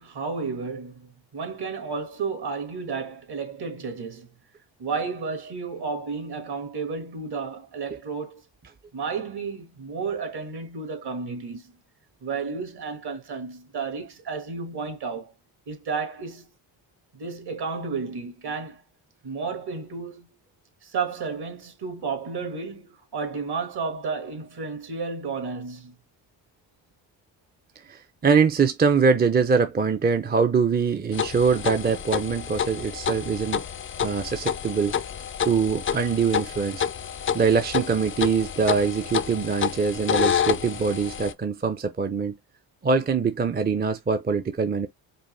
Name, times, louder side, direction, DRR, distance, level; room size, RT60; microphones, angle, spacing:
voice 1, 0.0-4.3 4.8-8.4 8.9-11.7 12.2-15.3 15.7-16.5 17.1-18.8 19.2-20.3 20.8-25.9, right 5 dB, 55° right, 1.8 m, -32 dB
voice 2, 27.9-33.6 34.0-35.0 35.4-36.8 37.3-42.4 42.8-44.9, right 5 dB, 20° right, 0.6 m, -23 dB
sound 1, 31.1-41.3, left 8 dB, 30° left, 0.4 m, -29 dB
5.3 x 2.1 x 3.2 m
cardioid pair, 90°, 45 cm